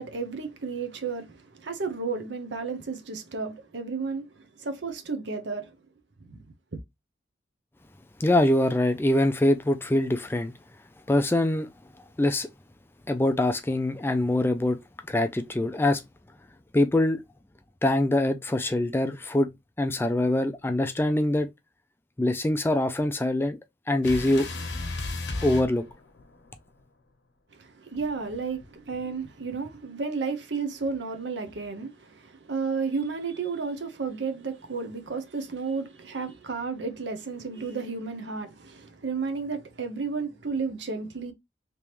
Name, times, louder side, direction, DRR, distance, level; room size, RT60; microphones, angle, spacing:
voice 1, 0.0-5.7 6.2-6.4 6.7-6.8 27.5-41.3, right 4 dB, 80° right, 0.8 m, -32 dB
voice 2, 8.2-10.6 11.1-11.7 12.2-12.5 13.1-14.8 15.1-16.0 16.7-17.2 17.8-19.5 19.8-21.5 22.2-23.6 23.9-24.5 25.4-25.9, left 1 dB, 10° left, 0.3 m, -24 dB
sound 1, 24.0-26.5 27.9-29.2, left 2 dB, 85° left, 1.0 m, -35 dB
3.5 x 2.9 x 3.0 m
head